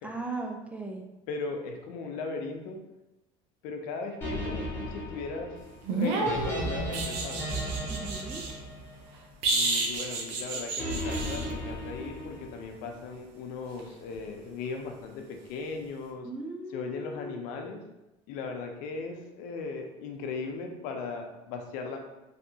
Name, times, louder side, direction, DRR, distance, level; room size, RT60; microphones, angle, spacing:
voice 1, 0.0-1.0 7.9-8.4 16.2-17.4, right 2 dB, 10° right, 2 dB, 0.3 m, -37 dB
voice 2, 1.3-2.8 3.6-5.6 5.9-7.5 9.5-16.3 16.7-17.8 18.3-22.0, left 4 dB, 75° left, 4 dB, 0.5 m, -37 dB
sound 1, 4.2-9.5 10.8-12.7, equal, 15° left, 1.1 m, -35 dB
sound 2, 5.8-8.5 9.4-11.5 14.1-14.3, right 3 dB, 85° right, 0.6 m, -30 dB
3.3 x 2.6 x 2.7 m, 0.98 s
cardioid pair, 120°, 15 cm